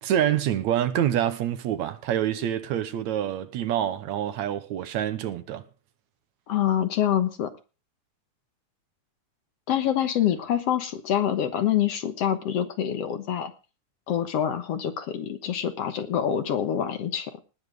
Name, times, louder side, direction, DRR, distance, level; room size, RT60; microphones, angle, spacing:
voice 1, 0.0-5.6, right 10 dB, 75° right, 2.2 m, -26 dB
voice 2, 6.5-7.5 9.7-13.5 14.1-17.3, left 10 dB, 60° left, 2.0 m, -26 dB
19.0 x 7.2 x 4.9 m
omnidirectional pair, 3.4 m